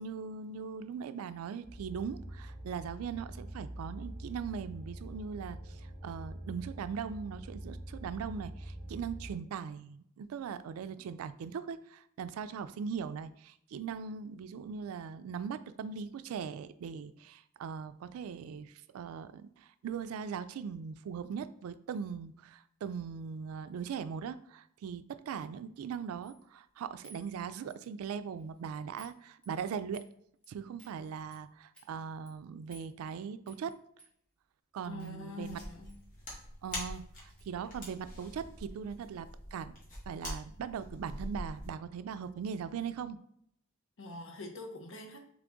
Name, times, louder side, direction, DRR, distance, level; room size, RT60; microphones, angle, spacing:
voice 1, 0.0-30.1 30.5-33.7 34.7-35.6 36.6-39.7 40.1-43.2, right 6 dB, 85° right, 0.3 m, -40 dB
sound 1, 1.6-9.3, right 1 dB, 15° right, 1.2 m, -45 dB
sound 2, 26.2-26.5 27.0-28.1 28.4-28.6 29.0-29.2 29.4-30.1 30.4-30.5 30.8-31.0 31.3-31.4 31.7-31.9 32.3-32.4 32.7-33.1 33.5-33.7 34.0-34.1 35.0-35.2 35.9-36.0 36.3-36.4 36.7-36.9 37.4-37.5, right 1 dB, 5° left, 0.9 m, -58 dB
voice 2, 34.9-36.0 44.0-45.2, left 2 dB, 65° left, 0.8 m, -44 dB
sound 3, 35.4-41.7, left 1 dB, 40° left, 1.4 m, -44 dB
3.8 x 3.2 x 3.5 m
head